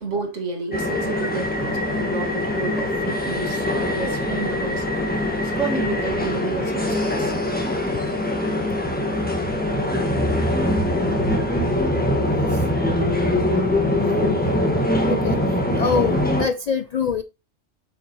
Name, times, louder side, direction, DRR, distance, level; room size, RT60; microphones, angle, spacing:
voice 1, 0.0-4.9 5.4-7.3, right 3 dB, 90° right, 2.0 m, -30 dB
sound 1, 0.7-16.5, left 1 dB, 10° left, 1.4 m, -23 dB
voice 2, 14.2-14.5 15.0-15.4 15.8-17.2, left 6 dB, 70° left, 0.3 m, -24 dB
7.9 x 5.9 x 3.0 m
omnidirectional pair, 1.2 m